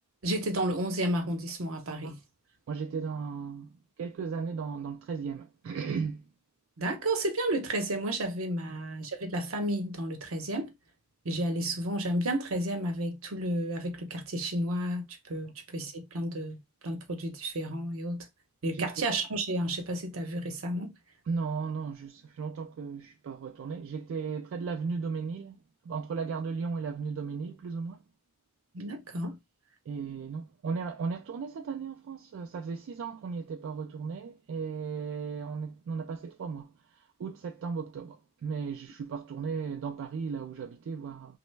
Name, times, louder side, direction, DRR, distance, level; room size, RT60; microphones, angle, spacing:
voice 1, 0.2-2.2 6.8-10.7 11.2-16.6 16.8-18.3 18.6-20.9 28.7-29.4, right 1 dB, 90° right, 0.8 m, -32 dB
voice 2, 2.7-6.3 8.7-8.8 15.4-15.5 18.7-19.0 21.3-28.0 29.9-41.4, right 5 dB, 70° right, 0.3 m, -36 dB
3.0 x 2.1 x 3.1 m
head